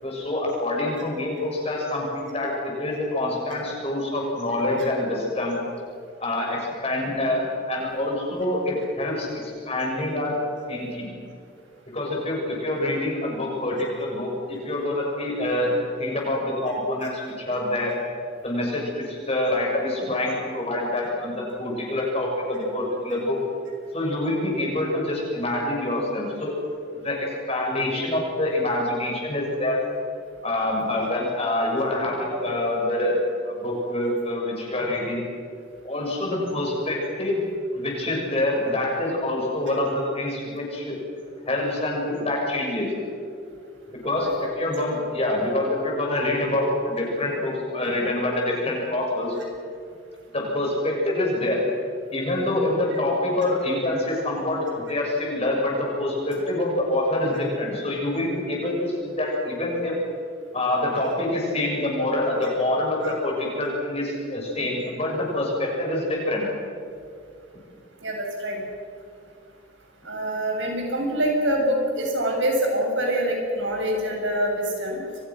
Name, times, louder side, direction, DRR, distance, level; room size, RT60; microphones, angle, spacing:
voice 1, 0.0-5.6 6.2-10.4 10.7-11.2 11.9-17.9 18.4-23.4 23.9-26.5 26.9-29.8 30.4-33.2 33.4-35.2 35.8-37.4 37.7-41.0 41.5-42.9 44.0-49.4 50.3-51.6 52.1-60.0 60.5-66.5, left 1 dB, 30° left, -2 dB, 7.2 m, -26 dB
voice 2, 44.0-44.5 57.3-57.4 63.0-63.1 68.0-68.6 70.0-75.0, right 1 dB, 70° right, 1 dB, 7.3 m, -25 dB
29.0 x 23.5 x 6.4 m, 2.4 s
head